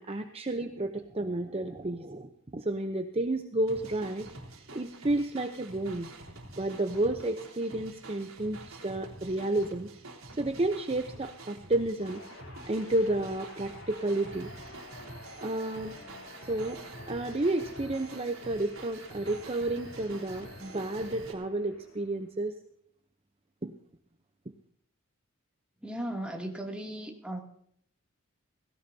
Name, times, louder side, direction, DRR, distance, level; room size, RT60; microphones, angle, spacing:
voice 1, 0.0-4.3 4.7-6.1 6.6-9.9 10.4-12.2 12.7-14.5 15.4-15.9 16.5-16.8 17.1-22.6 23.6-23.7, right 2 dB, 30° right, 6 dB, 0.8 m, -31 dB
sound 1, 3.7-21.3, right 2 dB, 75° right, 3.4 m, -47 dB
sound 2, 12.0-22.4, left 2 dB, 75° left, 5.8 m, -50 dB
voice 2, 25.8-27.4, right 1 dB, 5° right, 0 dB, 2.7 m, -36 dB
17.5 x 17.0 x 2.8 m, 0.65 s
head